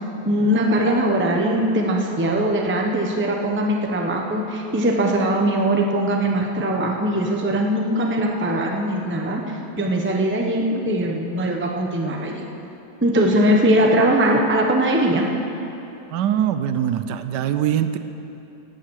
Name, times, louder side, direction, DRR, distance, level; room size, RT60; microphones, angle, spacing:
voice 1, 0.2-12.4 13.0-15.2, right 1 dB, 10° right, 1 dB, 0.9 m, -21 dB
voice 2, 16.1-18.0, right 10 dB, 90° right, 10 dB, 1.3 m, -22 dB
17.0 x 9.2 x 6.4 m, 2.8 s
omnidirectional pair, 1.8 m